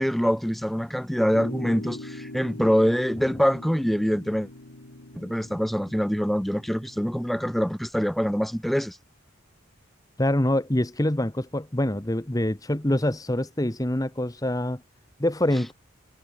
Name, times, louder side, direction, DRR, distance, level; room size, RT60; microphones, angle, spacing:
voice 1, 0.0-4.5 5.1-9.0, equal, ahead, 0.3 m, -24 dB
sound 1, 1.3-7.7, left 1 dB, 75° left, 2.0 m, -43 dB
voice 2, 10.2-14.8 15.2-15.7, left 1 dB, 15° left, 1.1 m, -25 dB
head